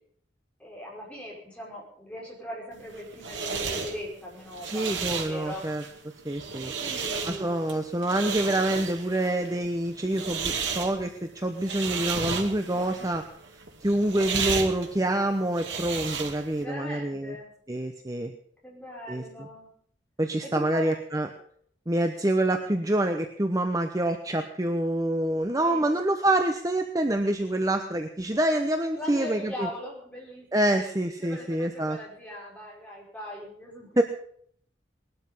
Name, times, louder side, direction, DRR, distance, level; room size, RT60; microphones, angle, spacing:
voice 1, 0.6-5.6 6.8-7.6 12.7-13.1 16.6-17.5 18.6-19.7 20.4-20.9 25.4-26.0 29.0-30.7 31.2-34.0, left 1 dB, 5° left, -4 dB, 5.6 m, -40 dB
sound 1, 2.8-16.6, right 5 dB, 90° right, 2.4 m, -34 dB
voice 2, 4.7-5.8 6.2-6.7 7.3-13.2 13.8-17.4 17.7-18.3 19.1-19.5 20.2-21.3 21.9-29.7 30.5-32.0 34.0-34.1, right 1 dB, 20° right, 6 dB, 0.9 m, -26 dB
20.0 x 12.5 x 5.5 m, 0.62 s
head